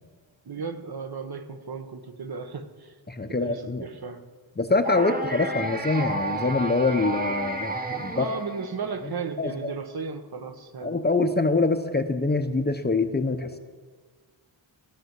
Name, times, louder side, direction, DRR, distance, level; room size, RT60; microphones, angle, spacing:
voice 1, 0.4-2.9 3.3-4.2 8.1-11.0, right 5 dB, 55° right, 8 dB, 1.1 m, -35 dB
voice 2, 3.1-3.9 4.6-8.3 9.4-9.7 10.8-13.6, left 3 dB, 20° left, 7 dB, 0.7 m, -25 dB
sound 1, 4.8-9.0, right 2 dB, 20° right, 1.0 m, -31 dB
15.0 x 12.0 x 8.1 m, 1.5 s
wide cardioid pair, 175°, 45 cm